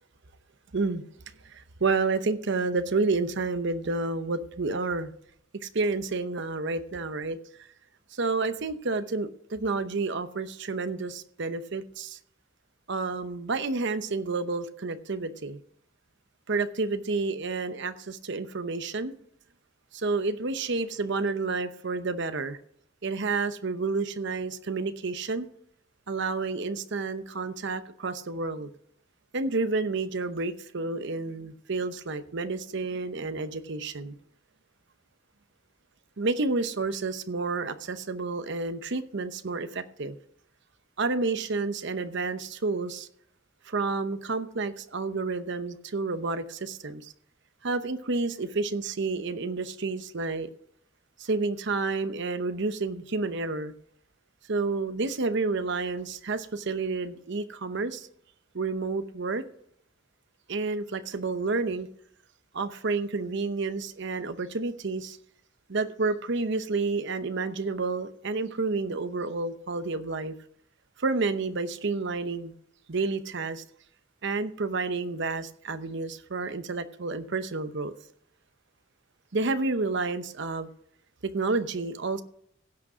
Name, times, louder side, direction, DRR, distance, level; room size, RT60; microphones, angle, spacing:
voice 1, 0.7-1.0 1.5-5.1 5.6-7.4 8.1-12.2 12.9-15.6 16.5-19.1 19.9-22.6 23.0-25.5 26.1-28.7 29.3-34.2 36.2-40.2 41.0-43.1 43.6-47.1 47.6-50.5 51.2-53.7 54.5-58.1 58.5-59.4 60.5-61.9 62.5-65.2 65.7-70.3 71.0-72.5 72.9-73.6 74.2-77.9 79.3-80.7 81.2-82.2, right 3 dB, 65° right, 0.8 m, -30 dB
16.5 x 6.2 x 4.9 m
head